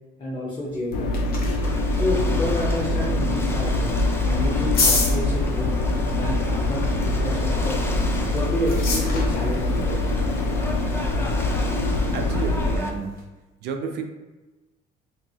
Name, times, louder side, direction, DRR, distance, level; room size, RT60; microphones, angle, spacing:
voice 1, 0.2-1.1 1.9-5.8 6.2-7.8 8.3-10.0, left 1 dB, 30° left, -8 dB, 0.8 m, -29 dB
sound 1, 0.7-13.2, left 3 dB, 60° left, 0.7 m, -33 dB
sound 2, 0.9-12.8, left 2 dB, 85° left, 0.4 m, -24 dB
Ocean / Boat Water vehicle, 1.6-12.9, left 1 dB, 15° left, 0.3 m, -33 dB
voice 2, 12.1-13.2 13.6-14.0, right 5 dB, 75° right, 5 dB, 0.4 m, -31 dB
2.7 x 2.7 x 2.7 m, 1.2 s
cardioid pair, 110°, 17 cm